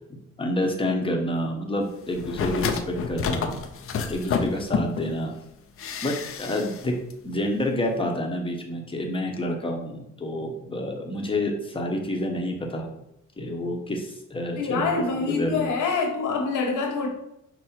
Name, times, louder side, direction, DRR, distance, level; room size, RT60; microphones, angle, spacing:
voice 1, 0.4-3.6 4.1-5.3 6.0-6.9 7.2-12.9 13.4-15.7, left 1 dB, 15° left, 1.0 m, -28 dB
sound 1, 2.1-5.1 5.8-6.8 7.1-7.2, left 6 dB, 45° left, 0.5 m, -29 dB
voice 2, 14.6-17.1, left 4 dB, 85° left, 1.2 m, -25 dB
5.4 x 2.2 x 4.3 m
cardioid pair, 90°, 30 cm